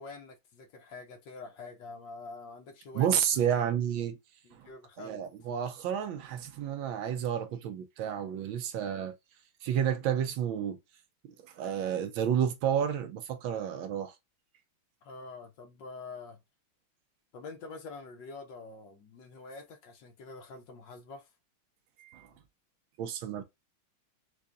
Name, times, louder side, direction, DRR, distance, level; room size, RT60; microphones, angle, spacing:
voice 1, 0.0-3.1 3.5-3.7 4.4-5.2 15.0-16.4 17.3-21.3, left 3 dB, 65° left, 1.4 m, -46 dB
voice 2, 2.9-4.2 4.5-4.7 5.0-9.1 9.6-10.8 11.4-14.1 22.0-22.3 23.0-23.4, right 9 dB, 75° right, 1.3 m, -31 dB
4.7 x 2.5 x 2.4 m
omnidirectional pair, 2.3 m